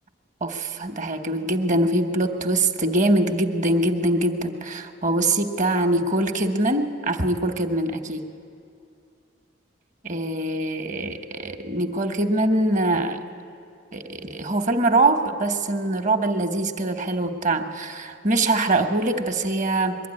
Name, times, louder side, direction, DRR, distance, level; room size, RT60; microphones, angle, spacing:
voice 1, 0.4-8.2 10.0-13.2 13.9-20.0, right 2 dB, 40° right, 6 dB, 1.1 m, -23 dB
22.5 x 12.5 x 9.8 m, 2.5 s
head